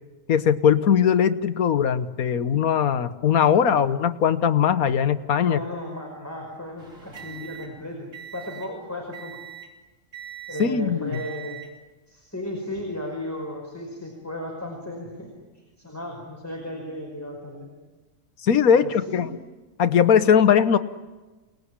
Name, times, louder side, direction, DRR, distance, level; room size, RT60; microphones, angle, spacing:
voice 1, 0.3-5.6 10.6-11.2 18.4-19.3 19.8-20.8, left 8 dB, 85° left, 12 dB, 1.5 m, -20 dB
voice 2, 3.5-3.8 5.3-9.4 10.5-11.6 12.1-17.7 18.7-19.3, left 1 dB, 10° left, 0 dB, 5.1 m, -35 dB
sound 1, 6.8-8.8 9.1-9.8 10.1-10.8 11.1-11.8 12.6-12.8, right 10 dB, 65° right, 4.0 m, -42 dB
28.5 x 20.0 x 9.9 m, 1.2 s
omnidirectional pair, 1.5 m